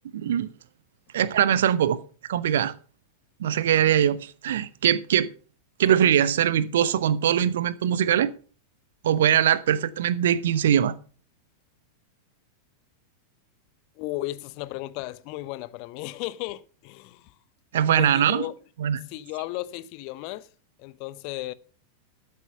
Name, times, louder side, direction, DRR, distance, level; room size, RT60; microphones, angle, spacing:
voice 1, 0.1-0.5 1.1-2.0 2.3-2.7 3.4-5.3 5.8-8.3 9.0-10.9 17.7-18.4 18.8-19.0, right 10 dB, 60° right, 0.8 m, -22 dB
voice 2, 14.0-17.3 18.0-18.5 18.9-20.5 20.8-21.5, left 17 dB, 45° left, 0.7 m, -35 dB
13.0 x 8.2 x 5.5 m
figure-of-eight pair, 90°, 0 cm